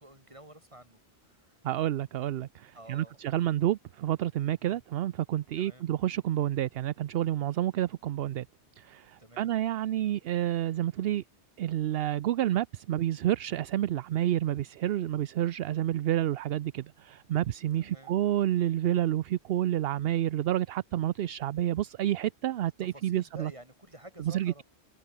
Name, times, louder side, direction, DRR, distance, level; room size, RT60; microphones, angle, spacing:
voice 1, 0.0-1.6 2.7-3.4 4.6-4.8 5.6-5.9 9.2-9.5 17.8-18.1 22.8-24.6, right 1 dB, 30° right, 4.7 m, -51 dB
voice 2, 1.6-8.5 8.8-11.2 11.6-23.5 24.2-24.6, right 12 dB, 65° right, 0.7 m, -29 dB
omnidirectional pair, 1.1 m